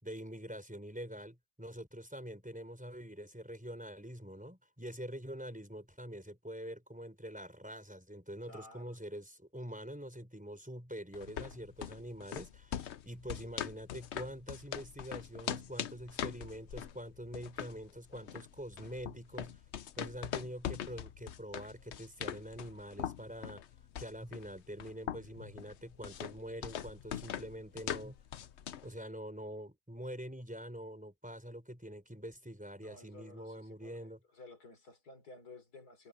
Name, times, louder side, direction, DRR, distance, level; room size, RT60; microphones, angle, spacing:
voice 1, 0.0-19.6 20.0-23.6 24.0-28.2 28.8-34.2, equal, 5° right, 4.7 m, -45 dB
voice 2, 8.4-9.0 32.8-36.1, left 2 dB, 85° left, 4.5 m, -54 dB
sound 1, 11.1-28.9, left 9 dB, 55° left, 0.9 m, -42 dB
omnidirectional pair, 1.6 m